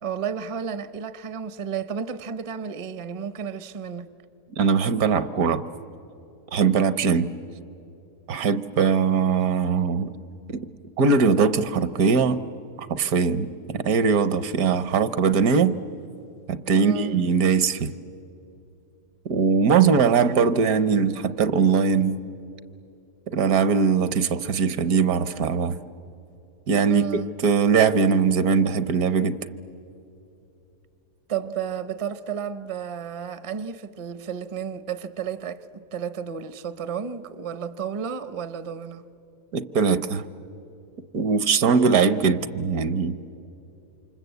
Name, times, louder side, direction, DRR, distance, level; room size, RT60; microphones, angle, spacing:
voice 1, 0.0-4.1 16.8-17.1 20.2-20.3 26.9-27.3 31.3-35.7 35.9-39.1, right 7 dB, 35° right, 0.5 m, -32 dB
voice 2, 4.6-5.6 6.5-7.3 8.3-10.1 10.5-10.7 11.0-12.4 12.9-15.7 16.5-17.9 19.2-22.2 23.3-25.8 26.7-27.0 27.4-29.4 39.5-40.2 41.1-43.2, right 5 dB, 70° right, 1.3 m, -21 dB
28.0 x 25.5 x 8.1 m
omnidirectional pair, 1.7 m